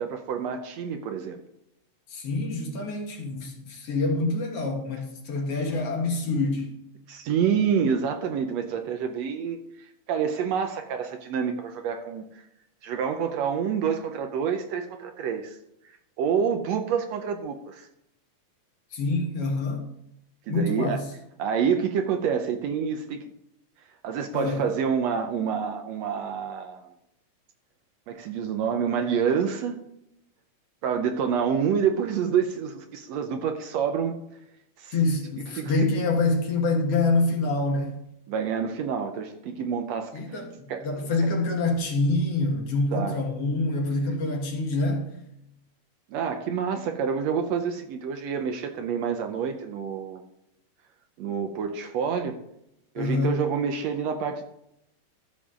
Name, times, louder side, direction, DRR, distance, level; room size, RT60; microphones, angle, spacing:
voice 1, 0.0-1.4 7.1-9.6 10.1-12.4 12.8-15.6 16.2-17.9 20.5-21.0 21.4-23.2 24.0-26.9 28.1-29.8 30.8-34.2 34.8-35.0 35.5-35.7 38.3-40.4 40.7-40.9 42.9-43.1 46.1-50.2 51.2-52.4 53.0-54.4, right 7 dB, 75° right, 1.7 m, -27 dB
voice 2, 2.1-6.7 18.9-19.9 20.5-21.1 24.3-24.7 34.9-38.0 40.1-45.0 53.0-53.4, left 2 dB, 55° left, 2.3 m, -26 dB
13.5 x 7.2 x 3.7 m
omnidirectional pair, 3.5 m